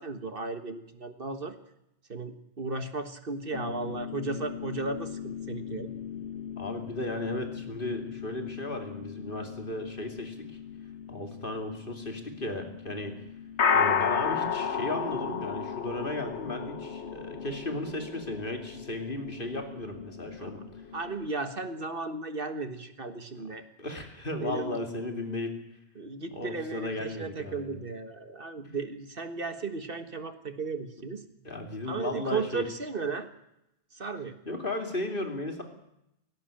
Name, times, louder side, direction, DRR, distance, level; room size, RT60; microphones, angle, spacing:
voice 1, 0.0-1.5 2.1-5.9 20.4-20.5 20.9-23.6 24.4-24.8 25.9-31.2 31.9-33.3 33.9-34.3, right 4 dB, 55° right, 9 dB, 1.7 m, -35 dB
sound 1, 3.5-21.3, left 7 dB, 80° left, 1.6 m, -34 dB
voice 2, 6.6-10.3 11.1-13.2 13.7-20.6 23.3-23.4 23.8-25.5 26.3-27.8 31.4-32.6 34.5-35.6, left 2 dB, 50° left, 4 dB, 3.0 m, -35 dB
18.5 x 17.0 x 9.0 m, 0.83 s
omnidirectional pair, 1.2 m